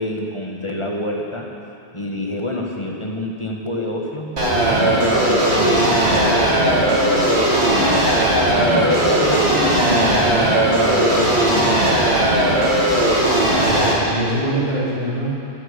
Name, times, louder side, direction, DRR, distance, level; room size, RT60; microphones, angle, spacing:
voice 1, 0.0-1.5 1.9-4.3 4.6-6.8 7.6-8.1 8.5-12.0, left 1 dB, 30° left, -1 dB, 1.7 m, -27 dB
sound 1, 4.4-13.9, right 1 dB, 80° right, 2.5 m, -17 dB
voice 2, 13.6-15.5, right 1 dB, 35° right, -8 dB, 3.9 m, -24 dB
11.0 x 11.0 x 8.3 m, 2.5 s
omnidirectional pair, 1.1 m